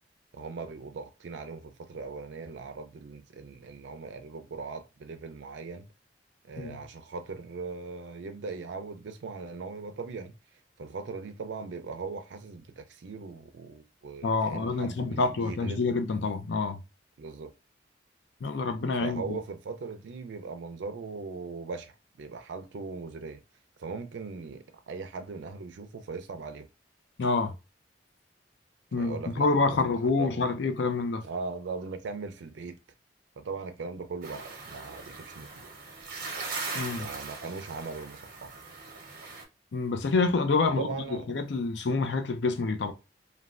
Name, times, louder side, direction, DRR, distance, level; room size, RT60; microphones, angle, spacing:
voice 1, 0.3-5.9 6.5-10.3 10.8-15.9 17.2-17.5 19.0-23.4 23.8-26.7 29.0-29.5 29.8-30.3 31.2-32.8 33.4-35.5 36.9-38.5 40.8-41.3, right 4 dB, 80° right, 0.4 m, -39 dB
voice 2, 14.2-16.8 18.4-19.4 27.2-27.5 28.9-31.2 36.7-37.1 39.7-40.9 41.3-42.9, left 3 dB, 75° left, 0.5 m, -27 dB
sound 1, 34.2-39.4, right 4 dB, 55° right, 0.8 m, -40 dB
3.2 x 2.2 x 2.4 m
head